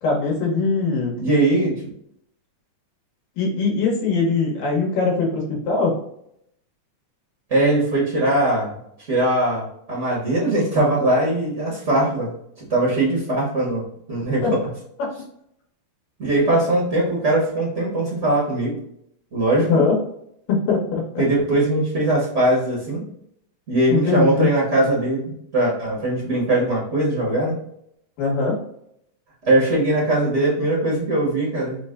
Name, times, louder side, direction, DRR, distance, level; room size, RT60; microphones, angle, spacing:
voice 1, 0.0-1.2 3.4-6.0 14.4-14.5 19.6-20.0 20.5-21.0 23.9-24.5 28.2-28.6, left 4 dB, 90° left, -2 dB, 3.0 m, -21 dB
voice 2, 1.2-1.8 7.5-8.8 9.1-12.3 12.6-13.8 14.1-14.5 16.2-18.8 19.3-19.8 21.2-23.0 23.7-25.2 25.5-27.5 29.5-31.8, right 1 dB, 80° right, -5 dB, 0.6 m, -20 dB
5.9 x 2.2 x 3.7 m, 0.73 s
omnidirectional pair, 3.7 m